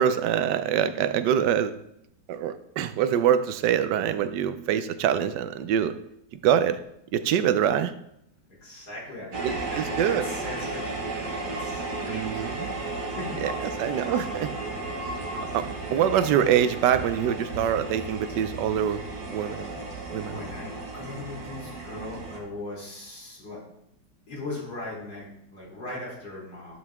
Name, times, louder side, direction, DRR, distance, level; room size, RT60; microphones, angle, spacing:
voice 1, 0.0-1.7 2.3-5.9 6.4-6.8 7.1-7.9 9.4-10.3 12.1-12.7 13.4-14.5 15.5-19.0 19.3-19.8 20.1-20.3, right 9 dB, 75° right, 12 dB, 1.2 m, -25 dB
voice 2, 8.6-14.2 15.6-15.7 20.2-23.6 24.3-26.8, left 2 dB, 60° left, -6 dB, 4.3 m, -40 dB
sound 1, 9.3-22.4, right 2 dB, 60° right, 1.9 m, -34 dB
11.0 x 5.4 x 3.5 m, 0.76 s
omnidirectional pair, 2.0 m